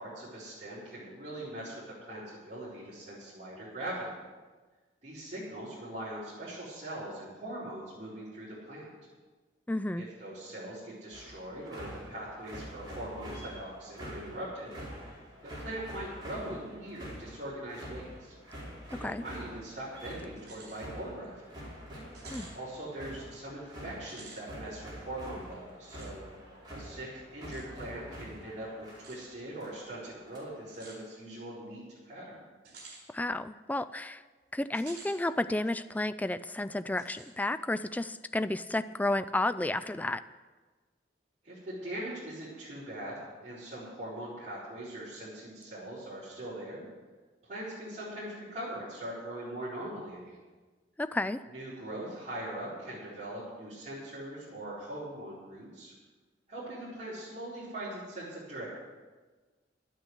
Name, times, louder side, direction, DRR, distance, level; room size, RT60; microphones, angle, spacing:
voice 1, 0.0-4.2 5.0-8.9 9.9-14.7 15.4-18.3 18.9-21.4 22.5-26.2 26.7-32.4 41.4-46.8 47.4-50.4 51.5-55.9 56.5-58.7, right 1 dB, 40° right, -12 dB, 4.9 m, -41 dB
voice 2, 9.7-10.1 18.9-19.2 22.3-22.5 33.1-34.2 34.5-40.2 51.0-51.4, left 2 dB, 10° left, 13 dB, 0.3 m, -32 dB
sound 1, 11.1-30.7, equal, 25° right, 4.9 m, -46 dB
sound 2, 20.4-20.8 21.2-21.3 22.1-22.6 24.0-24.4 26.0-26.1 27.5-27.7 29.0-29.2 30.7-31.0 32.6-33.0 34.7-35.2 35.6-35.7 37.0-37.3, right 3 dB, 60° right, 4.0 m, -50 dB
12.0 x 9.2 x 8.2 m, 1.3 s
head